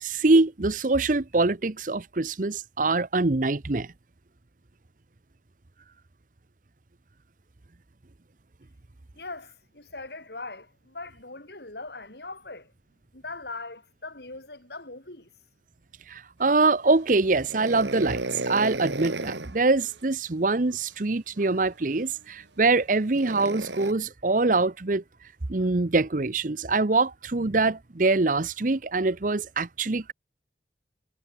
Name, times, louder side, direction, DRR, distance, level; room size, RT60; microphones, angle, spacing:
voice 1, 0.0-3.9 16.1-25.0 25.5-30.1, right 3 dB, 45° right, 0.8 m, -24 dB
voice 2, 9.1-12.7 13.1-15.3 25.6-25.7, left 3 dB, 65° left, 4.7 m, -40 dB
sound 1, 17.5-19.6 21.4-21.5 23.1-23.9, right 2 dB, 85° right, 3.9 m, -33 dB
head